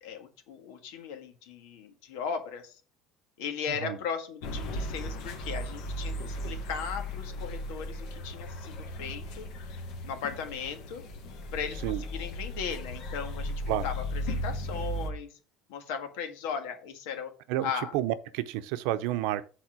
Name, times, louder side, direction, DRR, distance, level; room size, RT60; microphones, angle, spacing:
voice 1, 0.0-2.7 3.4-9.8 10.0-11.0 11.5-13.5 13.8-15.3 15.7-17.3 17.6-17.9, left 7 dB, 90° left, 1.7 m, -37 dB
sound 1, 4.4-15.1, equal, 65° left, 1.7 m, -36 dB
voice 2, 17.5-19.4, right 13 dB, 80° right, 0.7 m, -30 dB
7.4 x 4.3 x 6.2 m
cardioid pair, 140°, 0 cm